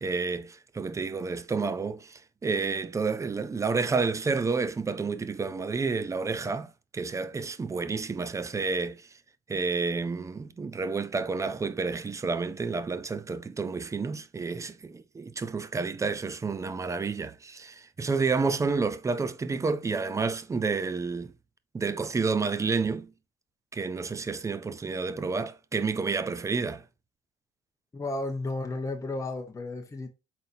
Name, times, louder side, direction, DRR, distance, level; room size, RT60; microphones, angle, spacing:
voice 1, 0.0-9.1 9.5-21.3 21.7-23.1 23.7-26.8, right 4 dB, 20° right, 0.4 m, -30 dB
voice 2, 27.9-30.1, left 2 dB, 20° left, 0.9 m, -33 dB
4.1 x 3.8 x 2.6 m
cardioid pair, 110°, 17 cm